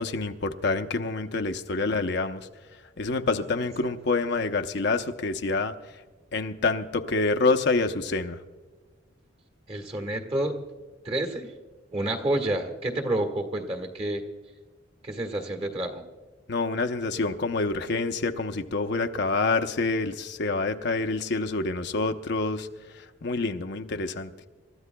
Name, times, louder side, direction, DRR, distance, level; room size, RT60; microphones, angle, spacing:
voice 1, 0.0-2.5 3.0-5.7 6.3-8.4 16.5-22.7 22.9-24.3, left 3 dB, 60° left, 7 dB, 0.7 m, -27 dB
voice 2, 3.6-3.9 9.7-10.6 11.0-11.5 11.9-14.2 15.0-16.0, right 1 dB, 30° right, 5 dB, 1.6 m, -29 dB
27.5 x 13.5 x 2.2 m, 1.3 s
head